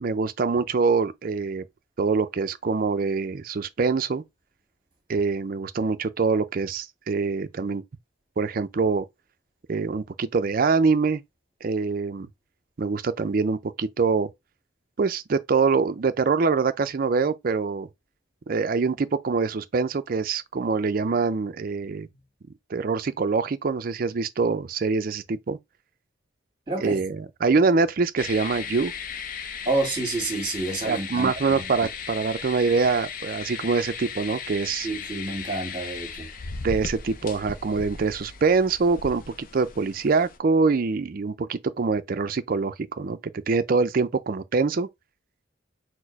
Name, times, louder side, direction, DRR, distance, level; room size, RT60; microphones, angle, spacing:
voice 1, 0.0-1.6 2.0-4.2 5.1-7.8 8.4-9.0 9.7-11.2 11.6-12.3 12.8-14.3 15.0-17.9 18.5-22.1 22.7-25.6 26.8-28.9 30.8-34.9 36.6-44.9, right 4 dB, 50° right, 0.4 m, -24 dB
voice 2, 26.7-27.0 29.7-31.7 34.8-36.3, right 2 dB, 25° right, 2.0 m, -29 dB
sound 1, 28.2-40.4, left 6 dB, 45° left, 0.5 m, -37 dB
4.4 x 2.0 x 4.5 m
head